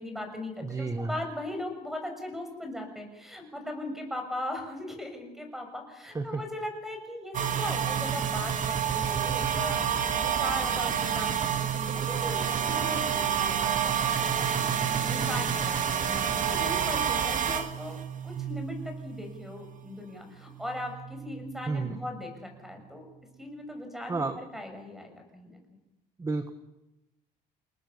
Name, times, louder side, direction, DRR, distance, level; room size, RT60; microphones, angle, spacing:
voice 1, 0.0-23.1 23.4-25.6, left 1 dB, ahead, 5 dB, 6.6 m, -39 dB
voice 2, 0.6-1.1 6.1-6.4 21.7-22.0 24.1-24.4 26.2-26.5, right 3 dB, 20° right, 9 dB, 1.5 m, -31 dB
sound 1, 7.3-20.1 20.4-22.8, right 8 dB, 50° right, 2.2 m, -29 dB
29.5 x 19.0 x 7.0 m, 0.96 s
cardioid pair, 110°, 17 cm